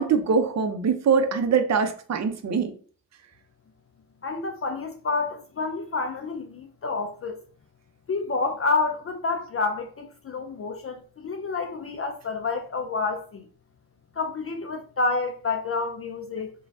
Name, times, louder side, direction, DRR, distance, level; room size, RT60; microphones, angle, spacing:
voice 1, 0.0-2.7, right 5 dB, 40° right, 0.6 m, -23 dB
voice 2, 4.2-7.4 8.1-13.4 14.2-16.5, left 3 dB, 35° left, 0.4 m, -29 dB
3.1 x 2.2 x 2.6 m
supercardioid pair, 45°, 42 cm